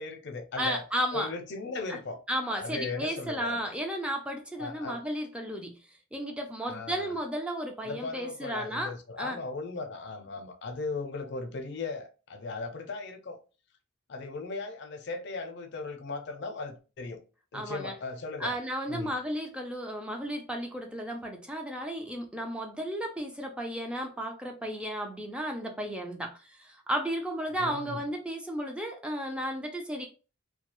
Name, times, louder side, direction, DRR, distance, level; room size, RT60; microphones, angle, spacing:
voice 1, 0.0-0.8 1.1-2.2 2.5-3.6 4.6-5.0 6.6-7.2 7.8-13.4 14.1-17.2 17.5-18.5 18.9-19.1 27.5-28.0, left 3 dB, 55° left, 0.5 m, -37 dB
voice 2, 0.6-1.3 1.9-2.0 2.3-5.7 6.1-9.4 17.5-17.9 18.4-30.1, equal, 5° right, 0.4 m, -34 dB
2.3 x 2.2 x 2.9 m
head